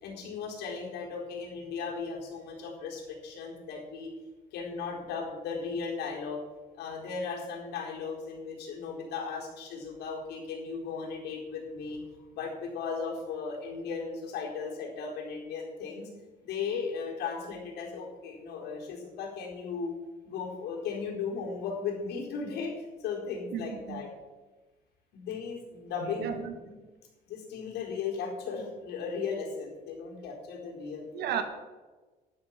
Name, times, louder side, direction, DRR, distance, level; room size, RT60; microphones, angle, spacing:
voice 1, 0.0-4.1 4.5-6.4 6.8-16.1 16.5-19.9 20.2-22.7 23.0-24.1 25.1-26.4 27.3-31.2, left 5 dB, 80° left, -1 dB, 4.3 m, -36 dB
voice 2, 23.5-24.1 26.0-26.5 31.1-31.4, right 9 dB, 75° right, 7 dB, 2.0 m, -34 dB
12.0 x 10.5 x 6.0 m, 1.2 s
cardioid pair, 110°, 17 cm